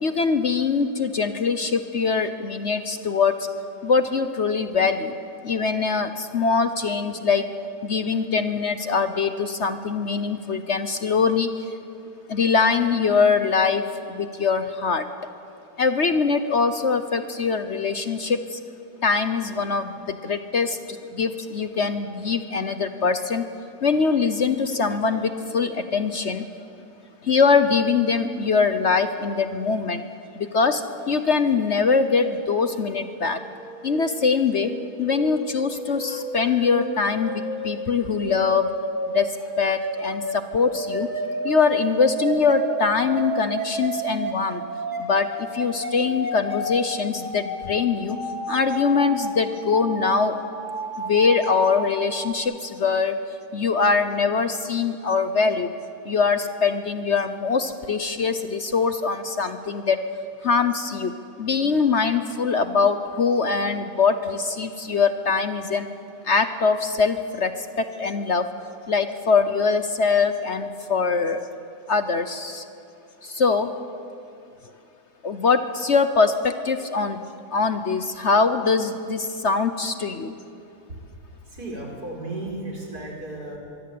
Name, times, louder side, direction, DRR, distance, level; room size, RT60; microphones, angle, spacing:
voice 1, 0.0-3.5 3.8-5.1 5.4-7.5 7.8-11.7 12.3-13.8 14.1-15.1 15.8-18.6 19.0-23.4 23.8-26.4 27.2-30.0 30.4-33.4 33.8-34.7 35.0-38.7 39.1-41.1 41.4-44.6 45.0-48.2 48.5-50.4 51.0-53.2 53.5-55.7 56.0-60.0 60.4-65.9 66.2-68.5 68.9-71.5 71.9-72.6 73.2-73.7 75.2-77.2 77.5-80.3, left 5 dB, 50° left, 9 dB, 1.1 m, -23 dB
sound 1, 33.2-52.3, right 1 dB, 30° right, 2.8 m, -32 dB
voice 2, 81.4-83.6, right 2 dB, 70° right, 0 dB, 5.8 m, -34 dB
24.5 x 23.5 x 8.6 m, 2.5 s
omnidirectional pair, 1.7 m